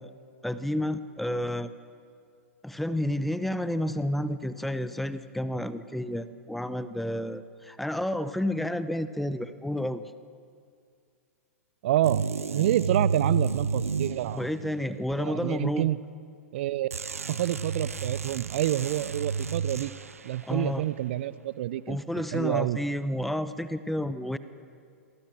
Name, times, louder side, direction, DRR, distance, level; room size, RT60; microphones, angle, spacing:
voice 1, 0.4-1.7 2.6-10.0 14.3-15.9 20.4-20.8 21.9-24.4, left 1 dB, ahead, 13 dB, 0.9 m, -30 dB
voice 2, 11.8-12.3 12.5-14.5 15.2-16.0 16.5-16.9 17.3-19.9 20.2-22.8, right 13 dB, 50° right, 18 dB, 0.8 m, -28 dB
sound 1, 12.0-14.9 16.9-20.3, right 5 dB, 75° right, 0.9 m, -31 dB
29.5 x 23.5 x 6.4 m, 2.2 s
figure-of-eight pair, 105°, 8 cm